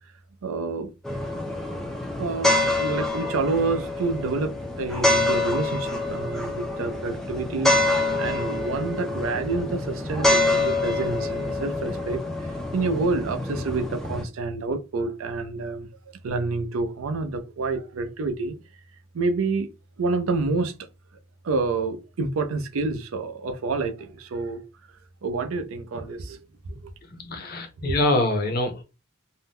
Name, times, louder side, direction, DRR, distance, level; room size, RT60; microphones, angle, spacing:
voice 1, 0.4-0.9 2.2-15.9 16.2-18.6 19.1-19.7 20.0-20.7 21.4-24.6 25.2-26.4 26.6-26.9 27.9-28.0, right 3 dB, 75° right, 0.5 m, -28 dB
sound 1, 1.0-14.2, left 2 dB, ahead, 0.3 m, -26 dB
voice 2, 27.1-28.8, left 2 dB, 45° left, 0.6 m, -25 dB
2.6 x 2.1 x 3.4 m
head